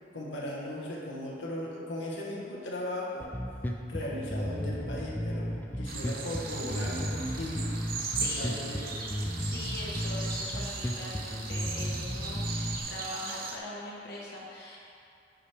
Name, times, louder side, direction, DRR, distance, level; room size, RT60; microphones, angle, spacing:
voice 1, 0.1-3.3 3.9-7.7 8.2-9.0, left 1 dB, 90° left, -4 dB, 1.2 m, -37 dB
Bass guitar, 3.2-12.8, equal, 10° left, 0.4 m, -34 dB
sound 1, 5.8-13.6, right 4 dB, 55° right, 0.7 m, -38 dB
voice 2, 8.0-8.8 9.4-14.8, left 1 dB, 60° left, -5 dB, 1.1 m, -42 dB
10.0 x 4.8 x 3.3 m, 2.5 s
head